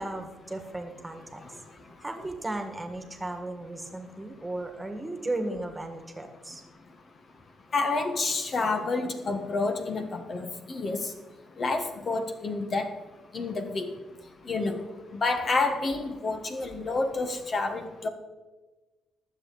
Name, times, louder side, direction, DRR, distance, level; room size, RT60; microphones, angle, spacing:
voice 1, 0.0-1.6 1.8-6.6, right 2 dB, 15° right, 6 dB, 1.8 m, -35 dB
voice 2, 7.7-11.1 11.6-12.9 13.3-13.9 14.5-14.8 15.1-18.1, left 3 dB, 45° left, 6 dB, 1.3 m, -29 dB
20.0 x 7.5 x 4.1 m, 1.2 s
cardioid pair, 95°, 0 cm